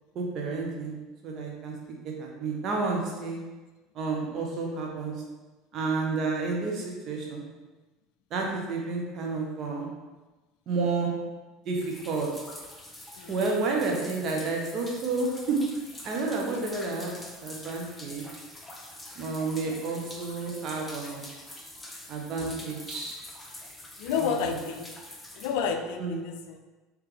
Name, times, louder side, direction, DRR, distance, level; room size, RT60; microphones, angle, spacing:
voice 1, 0.1-0.9 1.2-3.4 3.9-5.1 5.7-7.5 8.3-9.9 10.7-11.1 11.6-12.3 13.3-15.6 16.0-17.1 17.4-18.3 19.2-21.3 22.1-23.2 24.2-24.3 26.0-26.3, right 3 dB, 45° right, 0 dB, 0.9 m, -30 dB
sound 1, 11.8-25.5, left 1 dB, 10° left, 0.9 m, -45 dB
voice 2, 24.0-24.9 25.4-26.6, left 6 dB, 60° left, 5 dB, 0.3 m, -30 dB
3.3 x 3.2 x 3.4 m, 1.2 s
figure-of-eight pair, 70°, 0 cm